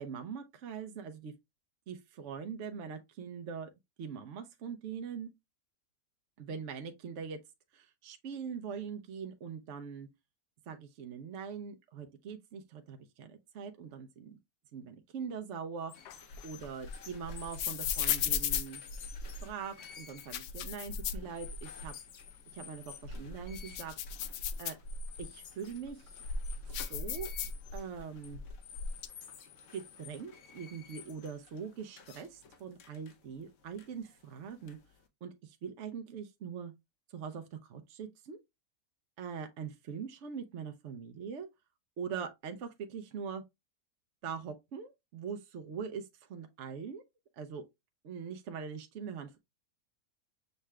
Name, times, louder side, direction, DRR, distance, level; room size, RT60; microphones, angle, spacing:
voice 1, 0.0-1.3 1.9-3.7 4.0-5.3 6.4-7.4 7.7-10.1 10.7-14.4 14.7-18.8 19.4-22.0 22.5-23.9 24.6-24.8 25.2-26.1 26.9-27.3 27.7-28.4 29.7-34.8 35.2-36.7 37.1-38.4 39.2-41.5 42.0-43.4 44.2-47.0 47.4-47.6 48.0-49.4, right 6 dB, 60° right, 0.8 m, -42 dB
sound 1, 15.8-35.1, left 7 dB, 60° left, 0.9 m, -53 dB
sound 2, 16.0-19.5 20.1-21.9 22.2-22.3 22.9-25.2 25.8-28.0 28.3-29.1, left 7 dB, 85° left, 1.2 m, -36 dB
6.5 x 2.3 x 3.1 m
omnidirectional pair, 1.7 m